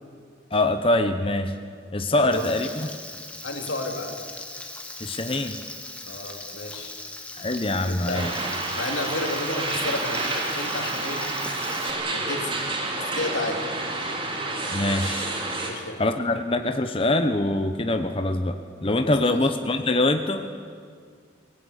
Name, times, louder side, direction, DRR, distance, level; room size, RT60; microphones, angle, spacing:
voice 1, 0.5-1.6 1.9-3.0 5.0-5.6 7.3-8.3 14.7-15.3 16.0-20.7, left 2 dB, 30° left, 7 dB, 0.9 m, -24 dB
voice 2, 2.1-2.4 3.4-4.2 6.0-6.9 7.8-8.3 8.8-11.3 12.1-12.5 13.0-13.6 15.6-16.0 19.0-19.4, left 2 dB, 85° left, 3 dB, 3.4 m, -32 dB
Frying (food), 2.3-11.9, left 2 dB, 5° left, 2.2 m, -39 dB
sound 1, 8.1-15.7, right 2 dB, 25° right, 3.1 m, -29 dB
22.5 x 18.0 x 10.0 m, 2.1 s
head